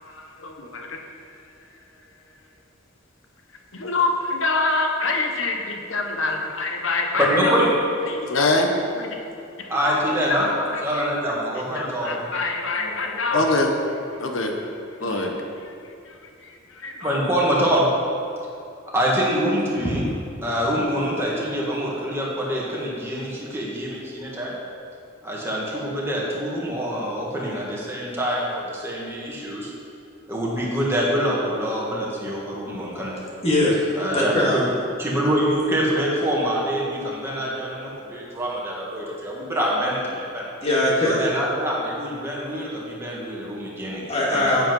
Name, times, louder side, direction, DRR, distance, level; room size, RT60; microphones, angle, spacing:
voice 1, 0.0-1.3 3.7-7.7 8.1-9.3 9.6-13.7 14.2-14.7 15.0-17.2, left 2 dB, 75° left, 3 dB, 1.1 m, -26 dB
voice 2, 7.2-7.7 9.7-10.5 10.8-12.3 12.7-13.4 15.0-15.3 17.0-17.9 18.9-20.0 20.4-24.6 25.2-29.7 30.3-33.1 33.9-34.6 35.0-40.5 41.0-44.0 44.3-44.5, equal, 10° right, -5 dB, 2.0 m, -25 dB
voice 3, 33.4-33.8 34.1-34.6 40.6-41.3 44.1-44.7, left 1 dB, 30° left, -5 dB, 2.4 m, -20 dB
9.0 x 7.8 x 5.5 m, 2.6 s
head